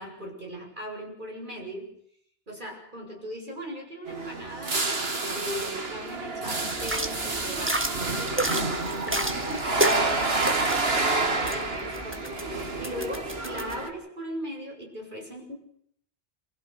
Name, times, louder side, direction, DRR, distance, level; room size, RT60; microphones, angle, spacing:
voice 1, 0.0-1.9 2.5-15.5, equal, 55° right, 1 dB, 8.2 m, -39 dB
sound 1, 4.1-13.9, right 3 dB, 80° right, 2.4 m, -29 dB
sound 2, 6.8-13.7, right 1 dB, 10° right, 2.0 m, -32 dB
28.0 x 16.0 x 6.9 m, 0.68 s
omnidirectional pair, 1.0 m